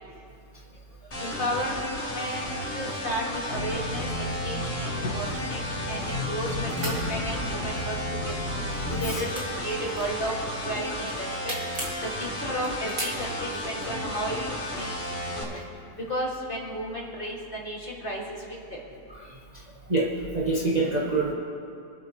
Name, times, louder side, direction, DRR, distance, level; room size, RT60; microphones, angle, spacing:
sound 1, 1.1-15.4, left 1 dB, 55° left, 3.1 m, -33 dB
voice 1, 1.2-8.3 9.0-9.3 9.6-10.3 10.6-11.5 12.2-14.4 14.7-14.9 15.4-15.6 16.1-18.2 18.5-18.6, equal, 35° left, -4 dB, 2.3 m, -33 dB
sound 2, 3.5-9.1, left 1 dB, 80° left, 1.8 m, -33 dB
sound 3, 5.2-6.4 6.6-7.0 7.8-8.2 8.5-10.5 10.9-12.0 12.5-13.7, right 1 dB, 60° right, 2.6 m, -37 dB
voice 2, 19.2-21.3, right 3 dB, 30° right, -5 dB, 1.2 m, -28 dB
24.0 x 8.1 x 3.1 m, 2.6 s
omnidirectional pair, 1.6 m